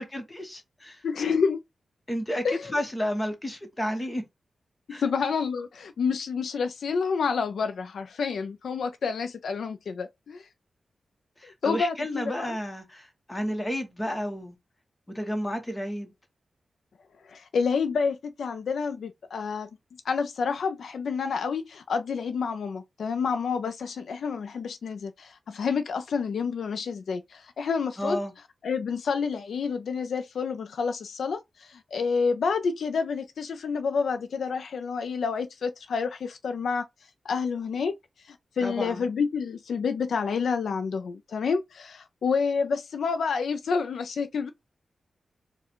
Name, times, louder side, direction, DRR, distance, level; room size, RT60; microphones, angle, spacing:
voice 1, 0.0-1.0 2.1-4.2 4.9-5.0 11.4-14.6 15.1-16.1 28.0-28.3 38.6-39.1, equal, 15° left, 1.0 m, -31 dB
voice 2, 1.0-1.6 2.4-2.7 4.9-10.5 11.4-12.6 17.3-19.7 20.1-28.2 28.6-36.8 37.2-37.9 38.3-44.5, left 5 dB, 75° left, 0.4 m, -29 dB
4.7 x 2.2 x 4.4 m
wide cardioid pair, 170°, 0 cm